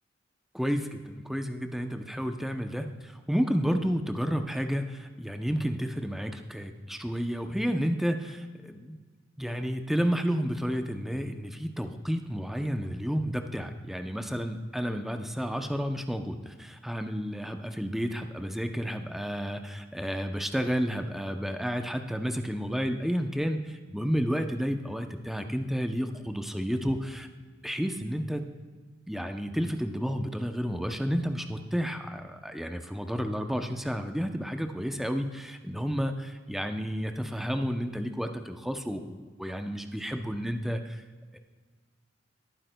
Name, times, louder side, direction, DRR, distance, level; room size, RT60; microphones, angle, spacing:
voice 1, 0.5-9.0 9.4-27.3 27.6-28.5 29.1-41.0 41.3-41.4, equal, ahead, 6 dB, 0.5 m, -31 dB
19.0 x 9.4 x 2.2 m, 1.5 s
head